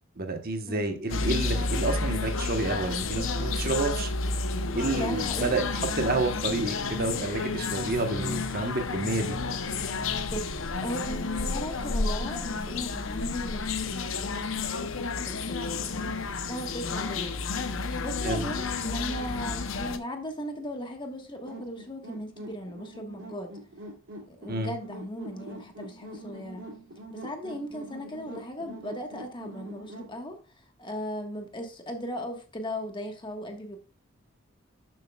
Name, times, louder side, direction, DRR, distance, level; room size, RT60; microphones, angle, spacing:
voice 1, 0.2-4.1 4.7-9.4 18.2-18.5 24.5-24.7, right 2 dB, 45° right, 5 dB, 1.2 m, -29 dB
voice 2, 0.7-1.0 4.9-5.6 10.3-17.4 18.0-23.5 24.3-26.7 27.1-30.4 30.8-33.8, equal, 25° left, 3 dB, 1.5 m, -37 dB
sound 1, 1.1-20.0, left 3 dB, 70° left, 0.8 m, -31 dB
sound 2, 21.5-30.1, right 1 dB, 65° right, 2.6 m, -44 dB
11.5 x 7.5 x 2.4 m, 0.35 s
head